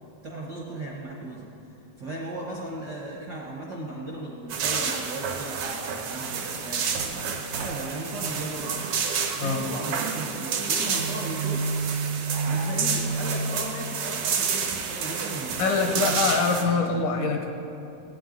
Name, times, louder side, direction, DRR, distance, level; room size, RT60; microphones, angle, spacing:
voice 1, 0.2-9.0 9.4-11.7 12.4-16.1 16.5-17.0, right 2 dB, 55° right, -3 dB, 1.2 m, -37 dB
sound 1, 4.5-16.6, right 5 dB, 75° right, 2.6 m, -29 dB
voice 2, 15.6-17.5, left 4 dB, 80° left, 3 dB, 2.6 m, -24 dB
17.0 x 8.9 x 3.9 m, 2.9 s
omnidirectional pair, 3.5 m